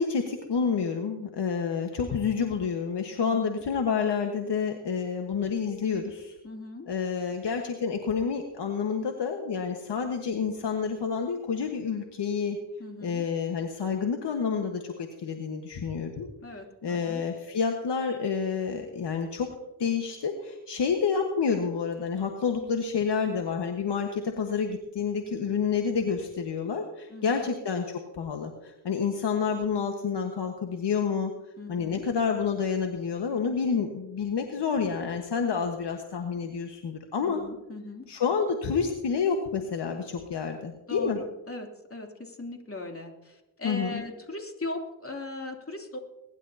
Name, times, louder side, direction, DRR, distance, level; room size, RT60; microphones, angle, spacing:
voice 1, 0.0-6.3 6.9-12.6 13.0-16.3 16.8-19.5 19.8-31.3 31.7-37.4 38.1-41.2 43.6-44.0, left 6 dB, 55° left, 4 dB, 1.5 m, -29 dB
voice 2, 6.4-6.9 12.8-13.2 16.4-17.2 27.1-27.5 31.6-32.0 37.2-38.0 40.9-46.0, left 2 dB, 25° left, 2 dB, 3.1 m, -39 dB
21.5 x 11.5 x 2.9 m, 0.98 s
supercardioid pair, 60°, 49 cm